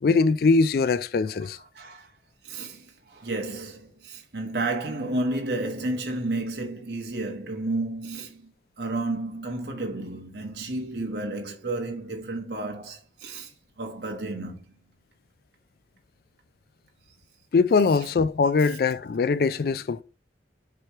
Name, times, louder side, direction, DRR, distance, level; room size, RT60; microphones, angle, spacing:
voice 1, 0.0-1.6 17.5-20.0, left 4 dB, 55° left, 0.3 m, -22 dB
voice 2, 1.7-2.1 2.4-8.5 8.8-13.5 13.8-14.6, right 2 dB, 65° right, 1.3 m, -31 dB
7.4 x 3.1 x 4.5 m
head